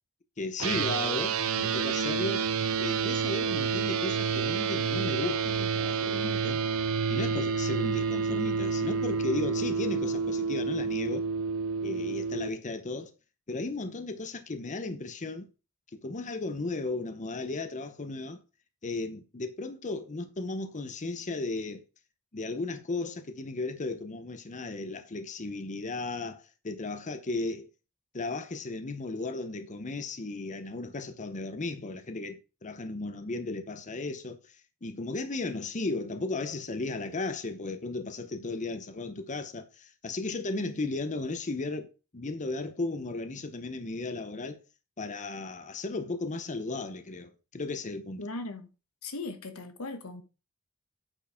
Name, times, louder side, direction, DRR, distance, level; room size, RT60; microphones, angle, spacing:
voice 1, 0.4-2.5 2.8-6.6 7.1-11.3 11.8-13.1 13.5-15.5 15.9-18.4 18.8-21.8 22.3-27.7 28.1-41.9 42.1-44.6 45.0-48.2, left 3 dB, 35° left, 0.8 m, -35 dB
sound 1, 0.6-12.5, right 5 dB, 75° right, 0.7 m, -29 dB
voice 2, 48.2-48.7 49.0-50.2, left 2 dB, 90° left, 1.2 m, -38 dB
8.8 x 4.6 x 4.4 m
head